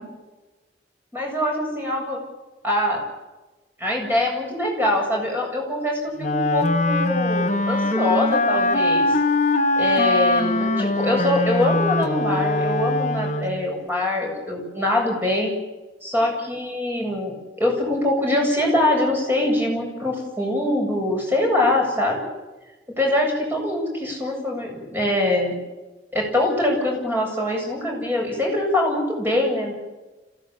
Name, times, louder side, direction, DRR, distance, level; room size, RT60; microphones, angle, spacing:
voice 1, 1.1-2.2 2.6-3.0 3.8-9.1 9.8-15.5 16.0-22.2 23.0-25.5 26.1-29.7, left 1 dB, 10° right, 0 dB, 7.8 m, -23 dB
Wind instrument woodwind instrument, 6.2-13.7, left 2 dB, 40° left, 1.3 m, -22 dB
26.5 x 16.5 x 8.9 m, 1.1 s
head